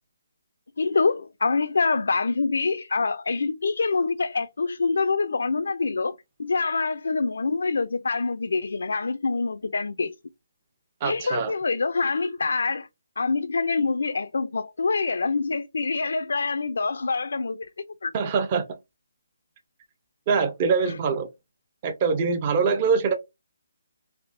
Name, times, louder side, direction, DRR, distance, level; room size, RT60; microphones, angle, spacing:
voice 1, 0.8-10.1 11.0-12.9 13.2-17.7 18.0-18.1, left 4 dB, 80° left, 0.3 m, -25 dB
voice 2, 11.0-11.5 18.1-18.6 20.3-21.3 21.8-23.1, right 5 dB, 30° right, 0.6 m, -23 dB
3.4 x 2.6 x 2.6 m
hypercardioid pair, 165°, 0 cm